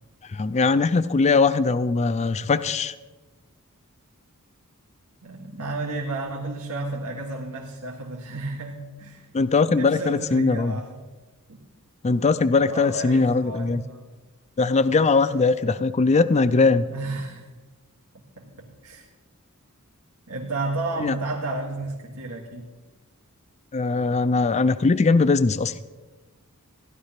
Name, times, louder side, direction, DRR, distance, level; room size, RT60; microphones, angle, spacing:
voice 1, 0.2-2.9 9.3-10.7 12.0-13.8 14.6-16.9 21.0-21.1 23.7-25.7, left 4 dB, 30° left, 12 dB, 0.4 m, -20 dB
voice 2, 5.2-9.3 9.7-11.0 11.5-11.6 12.7-14.0 16.9-17.5 18.1-19.1 20.3-22.7, right 2 dB, 80° right, -2 dB, 1.8 m, -32 dB
16.0 x 11.5 x 5.8 m, 1.2 s
head